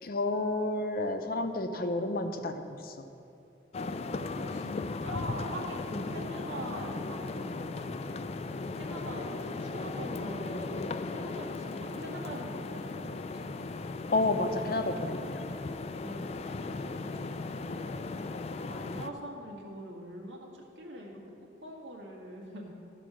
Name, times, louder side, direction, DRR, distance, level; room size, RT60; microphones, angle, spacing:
voice 1, 0.0-2.5 2.8-2.9 5.9-6.1 14.1-15.4, left 2 dB, 50° left, 7 dB, 0.7 m, -30 dB
sound 1, 3.7-19.1, left 3 dB, 35° left, 0.3 m, -37 dB
voice 2, 3.8-7.9 8.7-13.6 14.1-14.2 16.0-17.3 17.6-21.2 21.6-22.7, right 1 dB, 90° right, -1 dB, 1.8 m, -43 dB
13.5 x 4.9 x 6.3 m, 2.7 s
head